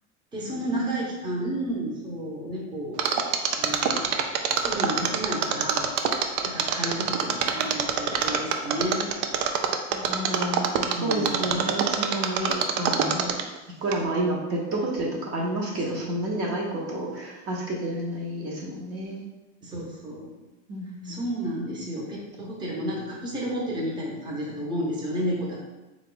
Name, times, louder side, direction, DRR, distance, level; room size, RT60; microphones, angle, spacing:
voice 1, 0.3-3.0 3.5-4.2 4.6-5.9 6.2-9.0 10.9-11.8 15.9-16.0 19.6-20.3 21.0-25.6, equal, 10° right, -4 dB, 0.7 m, -31 dB
Mechanisms, 3.0-13.6 13.9-14.0, right 8 dB, 65° right, 0.5 m, -24 dB
voice 2, 9.9-13.4 13.8-19.2 20.7-21.2, right 1 dB, 40° right, -1 dB, 0.8 m, -30 dB
3.7 x 2.4 x 3.7 m, 1.1 s
supercardioid pair, 125°, 36 cm